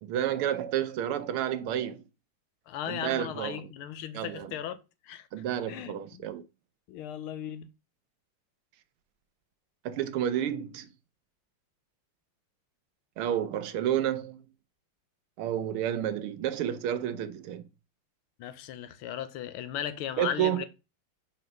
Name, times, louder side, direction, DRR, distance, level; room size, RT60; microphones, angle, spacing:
voice 1, 0.0-2.0 2.9-3.7 4.1-4.5 5.3-6.4 9.8-10.9 13.2-14.4 15.4-17.7 20.2-20.7, right 10 dB, 80° right, 1.7 m, -30 dB
voice 2, 2.7-5.3 5.7-6.2 6.9-7.7 18.4-20.7, left 10 dB, 80° left, 1.5 m, -37 dB
6.4 x 4.2 x 5.2 m
omnidirectional pair, 2.4 m